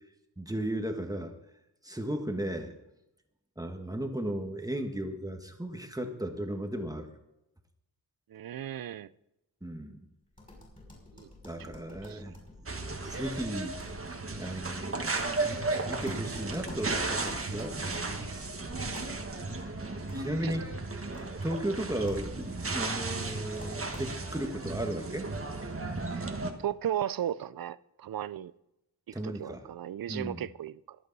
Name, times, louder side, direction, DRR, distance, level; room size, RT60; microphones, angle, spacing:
voice 1, 0.4-1.3 1.8-2.7 3.6-7.1 9.6-10.0 11.4-12.7 13.0-13.8 14.4-15.1 15.4-18.5 20.1-20.6 21.4-25.3 29.1-29.6 30.1-30.4, right 1 dB, 10° right, 1.5 m, -35 dB
voice 2, 8.3-9.1 11.1-11.3 11.6-11.7 12.0-12.4 20.4-20.5 26.1-26.3 26.6-28.5 29.1-31.0, right 10 dB, 60° right, 0.5 m, -36 dB
sound 1, 10.3-24.4, left 1 dB, 20° left, 6.1 m, -51 dB
sound 2, 12.7-26.5, right 3 dB, 35° right, 1.6 m, -35 dB
23.5 x 8.4 x 4.1 m
wide cardioid pair, 105°, 40 cm